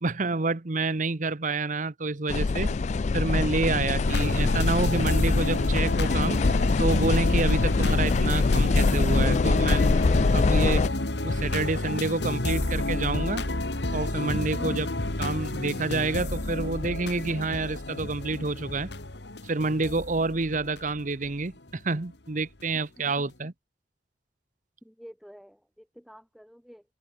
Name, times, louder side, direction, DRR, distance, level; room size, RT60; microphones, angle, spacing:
voice 1, 0.0-2.7 3.1-6.4 6.8-9.9 10.3-10.8 11.2-13.4 13.9-14.9 15.2-18.9 19.4-23.5, right 3 dB, 45° right, 1.0 m, -28 dB
sound 1, 2.3-10.9, left 3 dB, 40° left, 0.4 m, -24 dB
sound 2, 4.0-21.7 22.4-22.6, left 1 dB, 75° left, 2.2 m, -30 dB
voice 2, 22.7-23.1 24.8-25.6 26.0-26.8, equal, ahead, 1.5 m, -45 dB
head